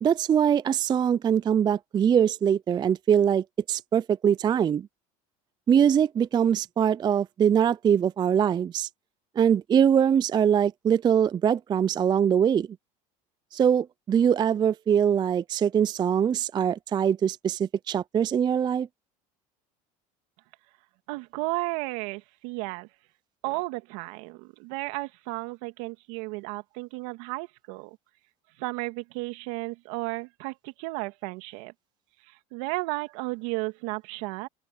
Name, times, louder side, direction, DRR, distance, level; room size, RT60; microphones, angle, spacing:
voice 1, 0.0-4.9 5.7-8.9 9.4-12.7 13.5-18.9, right 8 dB, 25° right, 0.3 m, -23 dB
voice 2, 21.1-22.9 23.4-28.0 28.6-31.7 32.3-34.5, right 24 dB, 75° right, 2.2 m, -33 dB
open air
supercardioid pair, 95°, 18 cm